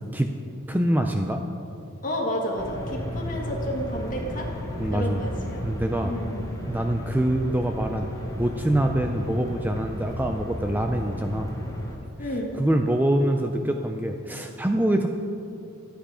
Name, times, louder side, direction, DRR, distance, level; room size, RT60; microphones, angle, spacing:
voice 1, 0.7-1.4 4.8-5.2 5.6-6.2 6.7-11.5 12.2-12.3 12.5-15.1, right 1 dB, 10° right, 4 dB, 0.4 m, -25 dB
voice 2, 2.0-4.5 4.9-5.7 6.0-6.4 12.2-12.6, equal, 40° left, -1 dB, 1.9 m, -31 dB
sound 1, 2.6-12.0, equal, 15° left, 1.1 m, -34 dB
sound 2, 3.4-9.9 11.3-11.4, right 1 dB, 30° right, 1.3 m, -49 dB
12.5 x 8.8 x 5.0 m, 2.6 s
head